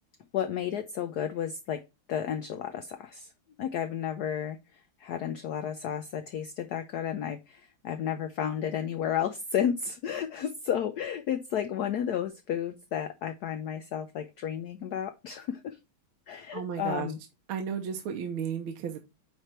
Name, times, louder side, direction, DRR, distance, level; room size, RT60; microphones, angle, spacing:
voice 1, 0.3-1.8 2.1-3.3 3.6-15.8 16.3-17.2, left 9 dB, 80° left, 8 dB, 0.8 m, -32 dB
voice 2, 16.5-17.1 17.5-19.0, right 7 dB, 75° right, 5 dB, 1.7 m, -33 dB
8.9 x 3.3 x 4.3 m, 0.26 s
omnidirectional pair, 2.4 m